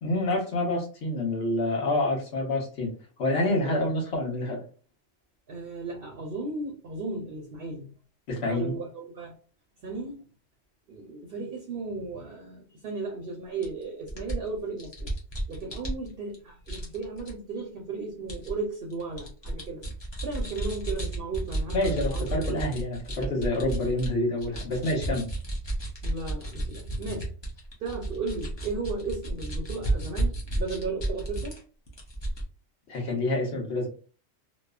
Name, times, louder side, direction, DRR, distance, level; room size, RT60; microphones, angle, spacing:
voice 1, 0.0-2.9 3.2-4.6 8.3-8.8 21.7-25.3 32.9-33.9, left 1 dB, 60° left, -1 dB, 1.2 m, -27 dB
voice 2, 5.5-7.9 8.5-9.3 9.8-10.2 10.9-15.1 15.5-19.8 20.2-22.5 26.0-27.3 27.8-31.6, right 3 dB, 55° right, 1 dB, 0.7 m, -35 dB
sound 1, 13.6-13.7 14.1-16.3 16.7-17.3 18.3-18.5 18.9-24.1 24.4-31.6 31.9-32.4, right 1 dB, 35° left, 0.4 m, -32 dB
2.9 x 2.0 x 2.3 m, 0.37 s
omnidirectional pair, 1.3 m